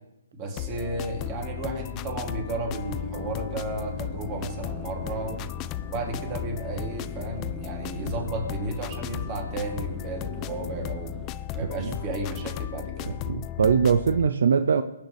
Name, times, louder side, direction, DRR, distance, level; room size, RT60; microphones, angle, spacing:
voice 1, 0.3-5.5 5.9-11.1 11.5-13.2, right 2 dB, 30° right, 1 dB, 2.7 m, -33 dB
sound 1, 0.6-14.3, left 14 dB, 25° left, 0.3 m, -35 dB
sound 2, 2.7-6.1, left 1 dB, 80° left, 2.3 m, -43 dB
sound 3, 2.8-12.0, right 2 dB, 10° right, 1.0 m, -45 dB
voice 2, 11.6-11.9 13.2-14.8, right 6 dB, 70° right, 10 dB, 0.5 m, -22 dB
21.5 x 8.4 x 3.4 m, 0.93 s
hypercardioid pair, 145°, 0 cm